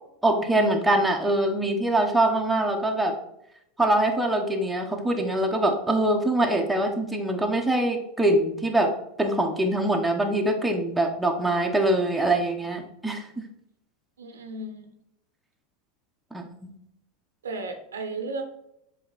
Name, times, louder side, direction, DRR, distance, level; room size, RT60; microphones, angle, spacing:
voice 1, 0.2-3.1 3.8-8.9 9.2-13.3 16.3-16.7, right 1 dB, 5° right, 1 dB, 1.2 m, -23 dB
voice 2, 14.2-15.0 17.4-18.4, right 3 dB, 80° right, 5 dB, 1.0 m, -34 dB
7.7 x 3.2 x 4.3 m, 0.78 s
figure-of-eight pair, 85°, 0 cm